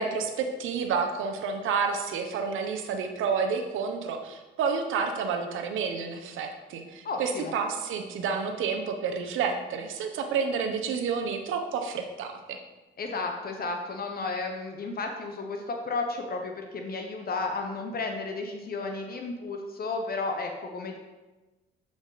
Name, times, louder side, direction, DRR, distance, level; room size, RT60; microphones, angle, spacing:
voice 1, 0.0-12.6, right 5 dB, 85° right, 5 dB, 0.9 m, -30 dB
voice 2, 7.0-7.5 13.0-21.0, left 3 dB, 50° left, 3 dB, 0.9 m, -33 dB
7.3 x 5.0 x 3.9 m, 1.1 s
cardioid pair, 90°, 20 cm